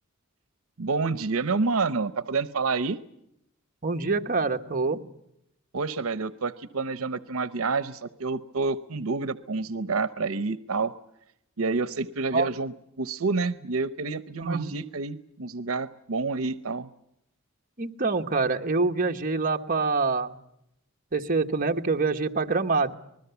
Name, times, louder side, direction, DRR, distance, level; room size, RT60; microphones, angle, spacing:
voice 1, 0.8-3.0 5.7-10.9 11.6-16.9, right 4 dB, 80° right, 14 dB, 0.8 m, -28 dB
voice 2, 3.8-5.0 12.3-12.5 14.4-14.7 17.8-20.4 21.1-23.0, right 4 dB, 40° right, 3 dB, 1.3 m, -25 dB
26.5 x 20.5 x 7.0 m, 0.79 s
head